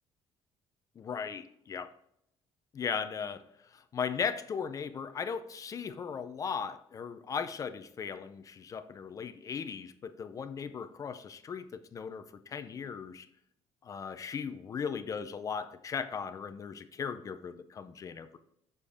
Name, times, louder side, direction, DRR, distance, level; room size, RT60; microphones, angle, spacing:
voice 1, 1.0-1.9 2.7-3.4 3.7-13.3 13.8-18.4, left 6 dB, 30° left, 10 dB, 0.5 m, -37 dB
7.4 x 6.7 x 3.5 m, 0.74 s
cardioid pair, 145°, 11 cm